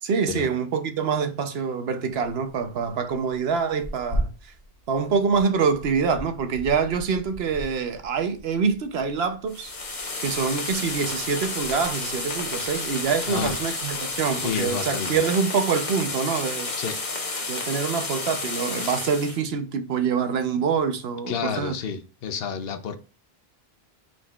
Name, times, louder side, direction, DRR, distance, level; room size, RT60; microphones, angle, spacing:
voice 1, 0.0-4.5 4.9-9.7 10.2-16.7 17.5-21.8, right 6 dB, 75° right, 0.9 m, -25 dB
Tearing, 3.6-14.7, right 1 dB, 60° right, 1.4 m, -39 dB
sound 1, 9.5-19.4, left 3 dB, 50° left, 1.1 m, -31 dB
voice 2, 14.2-15.2 16.8-17.0 21.3-23.0, left 7 dB, 75° left, 0.8 m, -30 dB
5.0 x 4.2 x 2.3 m
omnidirectional pair, 1.0 m